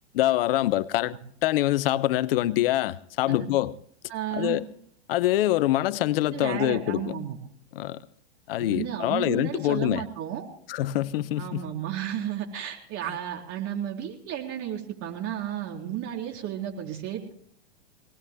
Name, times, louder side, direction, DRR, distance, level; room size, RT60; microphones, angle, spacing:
voice 1, 0.1-3.7 4.3-4.6 5.1-7.2 7.7-8.0 8.5-10.0 10.7-11.7, left 15 dB, 55° left, 0.8 m, -25 dB
voice 2, 4.1-4.6 6.3-7.4 8.6-10.4 11.4-17.3, right 10 dB, 40° right, 4.0 m, -33 dB
26.0 x 19.0 x 2.2 m
hypercardioid pair, 130°, 34 cm